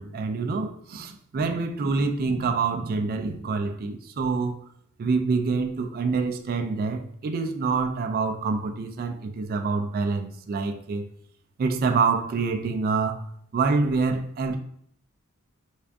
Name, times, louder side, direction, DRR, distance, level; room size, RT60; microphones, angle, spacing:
voice 1, 0.0-4.6 5.0-11.1 11.6-13.3 13.5-14.6, right 4 dB, 45° right, 0.3 m, -26 dB
3.5 x 2.4 x 3.4 m
head